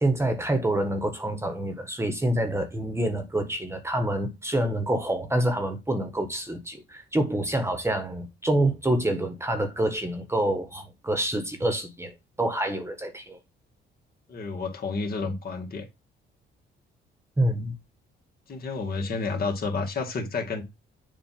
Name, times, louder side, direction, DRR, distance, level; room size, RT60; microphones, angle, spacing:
voice 1, 0.0-13.4 17.4-17.8, right 1 dB, 15° right, 1.4 m, -27 dB
voice 2, 14.3-15.9 18.5-20.6, left 4 dB, 50° left, 2.1 m, -30 dB
7.3 x 2.8 x 5.8 m
cardioid pair, 90°, 20 cm